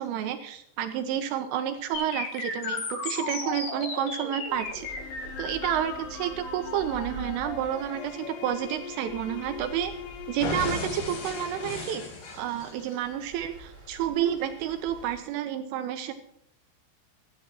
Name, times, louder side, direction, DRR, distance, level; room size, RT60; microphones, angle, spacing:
voice 1, 0.0-4.9 5.4-9.9 10.3-12.0 12.3-16.1, right 10 dB, 80° right, 7 dB, 3.2 m, -30 dB
sound 1, 1.9-9.9 10.4-13.0, left 4 dB, 60° left, 5.5 m, -36 dB
Stream, 4.5-15.2, right 1 dB, 15° right, 3.6 m, -47 dB
sound 2, 4.9-12.1, left 9 dB, 85° left, 4.1 m, -43 dB
26.5 x 9.7 x 3.0 m, 0.76 s
omnidirectional pair, 5.9 m